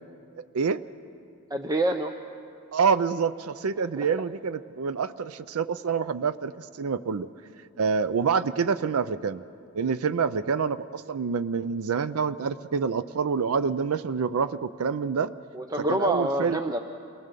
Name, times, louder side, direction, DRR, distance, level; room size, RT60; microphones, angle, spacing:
voice 1, 1.5-2.1 4.0-4.1 15.5-16.8, right 1 dB, 15° right, 5 dB, 0.6 m, -26 dB
voice 2, 2.7-7.3 7.8-9.4 9.7-15.3 15.8-16.6, right 6 dB, 80° right, 13 dB, 0.5 m, -27 dB
28.0 x 19.0 x 6.7 m, 2.5 s
head